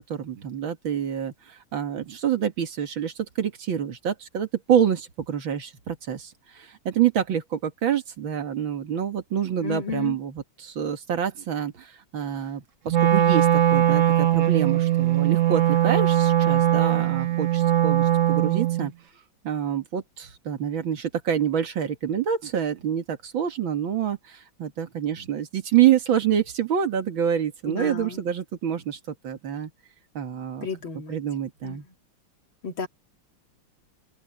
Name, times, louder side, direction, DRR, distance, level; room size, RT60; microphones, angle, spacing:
voice 1, 0.0-18.9 19.4-29.0 29.2-29.7 30.1-30.7 31.1-31.9, right 9 dB, 70° right, 2.5 m, -27 dB
voice 2, 9.6-10.2 27.7-28.2 30.6-31.2 31.6-31.8 32.6-32.9, left 5 dB, 75° left, 3.3 m, -32 dB
Wind instrument woodwind instrument, 12.9-18.9, right 12 dB, 55° right, 0.9 m, -20 dB
open air
omnidirectional pair, 2.2 m